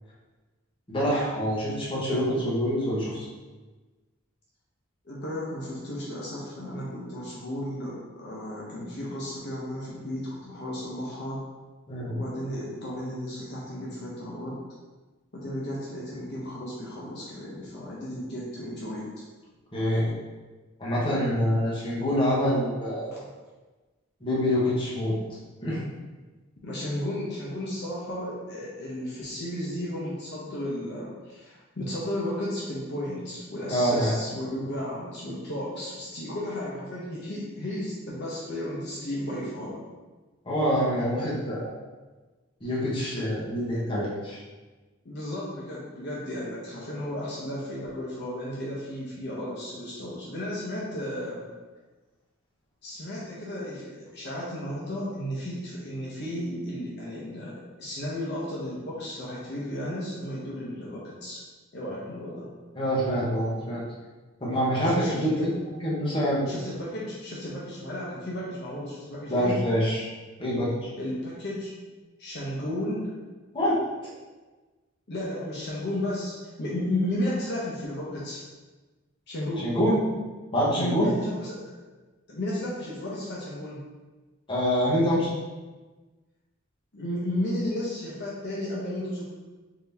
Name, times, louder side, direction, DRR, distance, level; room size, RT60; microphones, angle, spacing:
voice 1, 0.9-3.2 11.9-12.1 19.7-20.1 20.8-23.1 24.2-25.2 25.6-25.8 33.7-34.1 40.4-41.7 42.6-44.4 62.7-63.8 64.4-66.5 69.3-70.1 70.4-70.9 73.5-73.8 79.6-80.0 80.5-81.1 84.5-85.3, equal, 25° left, -7 dB, 0.9 m, -25 dB
voice 2, 5.0-11.4 12.1-14.6 15.3-19.1 23.1-23.2 26.6-39.8 45.0-51.4 52.8-57.5 57.8-61.4 61.7-62.5 64.8-65.5 66.5-69.6 71.0-71.7 72.2-73.2 75.1-78.4 79.3-79.7 80.6-81.6 82.3-83.8 86.9-89.2, left 1 dB, 50° left, -5 dB, 0.7 m, -34 dB
3.7 x 2.8 x 3.4 m, 1.2 s
head